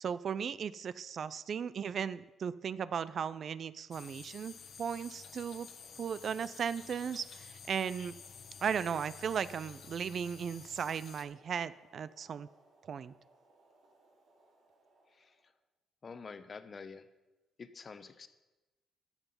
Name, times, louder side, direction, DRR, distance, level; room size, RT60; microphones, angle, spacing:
voice 1, 0.0-5.7 6.0-8.1 8.6-12.5 12.9-13.1, right 7 dB, 55° right, 16 dB, 0.4 m, -36 dB
sound 1, 3.9-11.2, left 6 dB, 60° left, 1.2 m, -51 dB
Boiling, 4.6-15.6, right 2 dB, 75° right, 3.4 m, -67 dB
voice 2, 16.0-17.0 17.6-18.3, left 5 dB, 40° left, 11 dB, 0.8 m, -47 dB
13.0 x 7.1 x 5.6 m, 1.1 s
cardioid pair, 90°, 0 cm